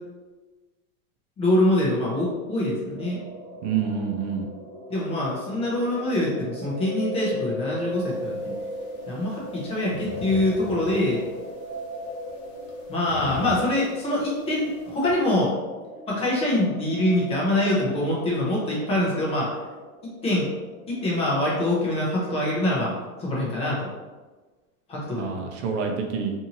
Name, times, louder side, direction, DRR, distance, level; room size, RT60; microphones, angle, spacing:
voice 1, 1.4-3.2 4.9-8.5 9.1-11.2 12.9-15.5 16.1-19.5 20.0-20.5 20.9-22.9 23.2-23.9 24.9-25.3, left 1 dB, 15° left, -5 dB, 0.4 m, -24 dB
sound 1, 2.9-22.0, right 1 dB, 85° right, 0.9 m, -39 dB
voice 2, 3.6-4.5 25.2-26.3, right 6 dB, 50° right, 2 dB, 0.6 m, -27 dB
sound 2, 7.9-15.1, left 4 dB, 55° left, 0.9 m, -43 dB
2.7 x 2.6 x 2.7 m, 1.3 s
supercardioid pair, 135°, 44 cm